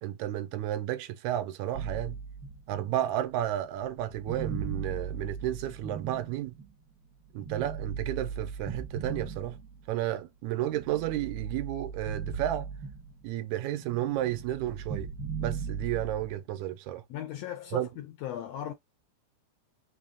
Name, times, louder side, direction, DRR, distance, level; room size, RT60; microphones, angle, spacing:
voice 1, 0.0-2.2 2.7-6.5 7.3-9.6 9.9-12.7 13.2-15.1 15.4-17.0 17.7-17.9, right 13 dB, 85° right, 2.0 m, -32 dB
sound 1, 1.7-6.8 7.4-10.0 10.5-13.4 13.6-16.3, right 6 dB, 60° right, 1.1 m, -38 dB
voice 2, 17.1-18.7, left 11 dB, 80° left, 1.5 m, -37 dB
5.1 x 2.0 x 3.4 m
omnidirectional pair, 3.4 m